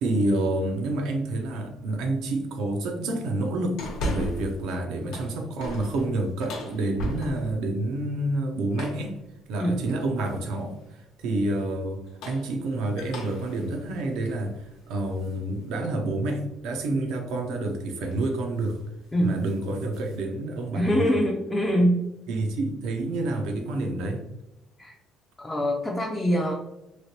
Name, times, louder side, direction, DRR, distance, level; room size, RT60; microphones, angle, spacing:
voice 1, 0.0-3.8 4.1-9.1 9.5-18.8 19.2-21.1 22.3-24.2, right 2 dB, 85° right, 3 dB, 0.6 m, -28 dB
sound 1, 3.8-4.6 5.0-7.6 8.7-9.1 10.2-10.6 11.9-15.4 15.8-15.9 17.5-17.7 18.0-18.3 18.6-18.8 19.2-20.2, left 1 dB, 90° left, 0.8 m, -37 dB
voice 2, 20.7-22.0 24.8-25.0 25.4-26.5, equal, 10° left, 0 dB, 0.3 m, -24 dB
3.1 x 2.8 x 2.8 m, 0.94 s
cardioid pair, 150°, 0 cm